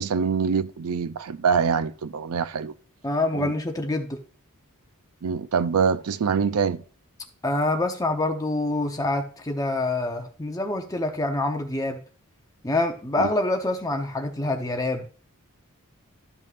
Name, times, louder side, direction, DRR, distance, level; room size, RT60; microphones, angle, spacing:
voice 1, 0.0-2.7 3.3-3.5 5.2-6.8, right 6 dB, 80° right, 0.5 m, -24 dB
voice 2, 3.0-4.2 7.4-12.0 12.6-15.1, left 2 dB, 15° left, 0.7 m, -26 dB
12.5 x 5.4 x 2.5 m
head